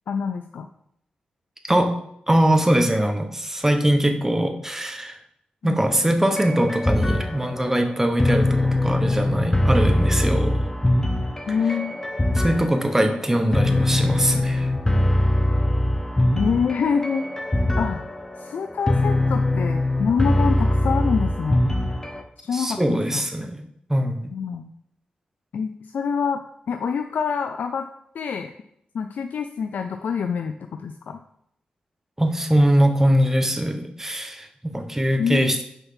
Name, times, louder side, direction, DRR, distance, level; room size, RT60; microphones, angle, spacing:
voice 1, 0.1-0.7 5.6-5.9 11.5-12.0 16.3-17.3 17.8-18.0 18.4-21.6 22.4-23.2 24.3-24.7 25.5-26.4 26.7-27.9 28.1-28.5 28.9-31.2 35.2-35.6, left 6 dB, 80° left, 6 dB, 0.4 m, -26 dB
voice 2, 2.3-5.2 5.6-10.7 11.5-11.8 12.3-14.7 22.5-23.6 23.9-24.3 32.2-35.6, right 1 dB, 15° right, 5 dB, 1.1 m, -22 dB
sound 1, 6.3-22.2, left 1 dB, 20° left, 1.0 m, -22 dB
6.6 x 4.6 x 5.8 m, 0.74 s
cardioid pair, 70°, 3 cm